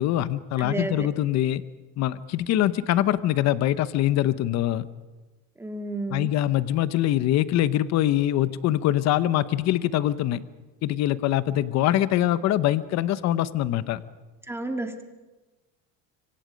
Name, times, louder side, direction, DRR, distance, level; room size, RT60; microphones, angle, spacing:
voice 1, 0.0-1.6 2.0-4.9 6.1-10.4 10.8-14.0, left 13 dB, 50° left, 14 dB, 1.0 m, -23 dB
voice 2, 0.6-1.1 5.6-6.3 14.5-15.0, right 2 dB, 5° right, 5 dB, 1.9 m, -31 dB
26.0 x 25.0 x 5.3 m, 1.2 s
cardioid pair, 150°, 35 cm